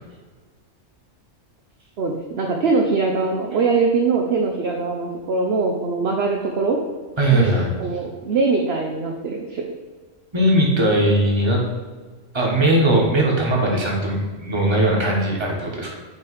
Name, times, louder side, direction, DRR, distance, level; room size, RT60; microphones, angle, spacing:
voice 1, 2.0-6.8 7.3-9.7, right 4 dB, 60° right, 1 dB, 0.8 m, -22 dB
voice 2, 7.2-7.7 10.3-11.6 12.3-15.9, right 1 dB, 20° right, -2 dB, 1.4 m, -19 dB
8.4 x 3.3 x 4.7 m, 1.4 s
omnidirectional pair, 1.3 m